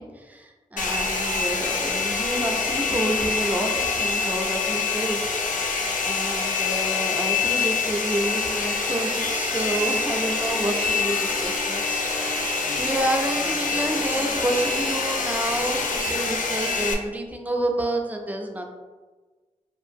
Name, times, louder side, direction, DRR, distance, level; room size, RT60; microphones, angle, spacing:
voice 1, 0.0-5.2 6.0-18.8, right 1 dB, 10° right, 2 dB, 0.4 m, -29 dB
Domestic sounds home sounds, 0.8-16.9, left 4 dB, 70° left, 0.4 m, -26 dB
sound 1, 9.6-16.0, right 1 dB, 85° right, 0.8 m, -40 dB
2.6 x 2.4 x 2.6 m, 1.3 s
wide cardioid pair, 70°, 14 cm